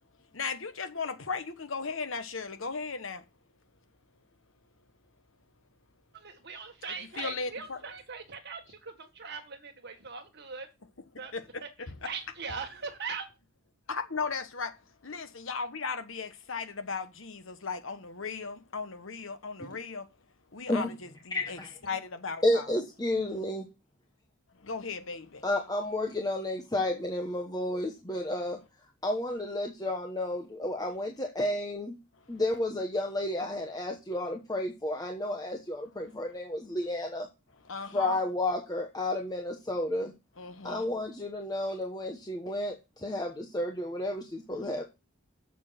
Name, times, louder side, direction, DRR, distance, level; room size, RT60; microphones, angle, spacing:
voice 1, 0.3-3.3 7.2-7.8 11.3-12.1 13.9-20.1 20.5-22.7 24.5-25.5 32.1-32.4 37.6-38.2 40.4-40.9 44.5-44.7, left 4 dB, 65° left, 1.2 m, -37 dB
voice 2, 6.1-10.7 11.2-11.3 11.6-11.7 12.1-13.3, right 5 dB, 55° right, 1.9 m, -40 dB
voice 3, 21.3-21.7 22.4-23.7 25.4-28.6 29.0-32.0 32.3-37.3 37.9-40.1 40.6-44.8, left 1 dB, 20° left, 1.1 m, -31 dB
7.2 x 6.7 x 5.8 m
head